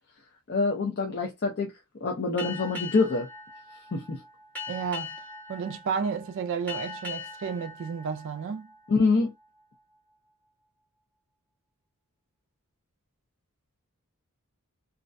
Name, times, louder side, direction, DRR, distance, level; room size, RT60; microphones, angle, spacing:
voice 1, 0.5-1.7 2.0-3.3 3.9-4.2 8.9-9.3, left 3 dB, 50° left, 0.5 m, -25 dB
Boat Water vehicle, 2.4-9.4, left 4 dB, 5° left, 0.8 m, -41 dB
voice 2, 4.7-5.1 5.5-8.7, right 6 dB, 55° right, 0.3 m, -32 dB
2.3 x 2.1 x 2.4 m
head